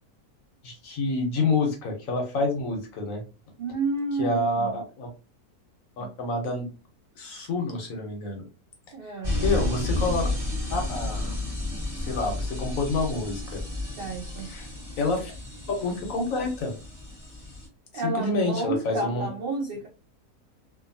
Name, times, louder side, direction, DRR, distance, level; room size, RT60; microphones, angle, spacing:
voice 1, 0.6-3.2 4.2-5.1 6.0-6.7 7.2-8.4 9.0-9.1 9.4-10.3 10.7-11.4 11.9-13.6 14.5-14.7 15.0-15.3 15.8-16.7 18.0-19.3, left 2 dB, 65° left, 2 dB, 1.1 m, -28 dB
voice 2, 3.6-4.8 8.9-9.4 14.0-14.5 17.9-19.9, right 3 dB, 80° right, 1 dB, 0.5 m, -30 dB
sound 1, 9.2-17.7, left 2 dB, 15° right, 1.2 m, -31 dB
2.7 x 2.5 x 2.5 m, 0.34 s
omnidirectional pair, 1.6 m